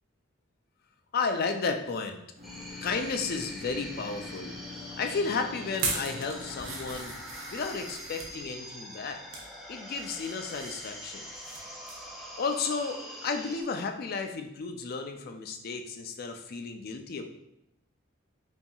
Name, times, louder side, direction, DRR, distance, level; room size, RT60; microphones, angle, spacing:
voice 1, 1.1-2.2 2.8-4.6 5.0-7.1 7.5-9.2 9.7-11.3 12.4-17.2, left 4 dB, 50° left, 6 dB, 0.4 m, -33 dB
sound 1, 2.4-13.6, equal, ahead, 0.5 m, -44 dB
sound 2, 2.4-8.5, left 4 dB, 50° right, 1.2 m, -46 dB
sound 3, 5.7-8.3 8.9-9.5 9.9-11.6 11.9-12.1 12.5-12.6, right 3 dB, 75° right, 0.8 m, -38 dB
5.4 x 2.7 x 2.3 m, 0.80 s
head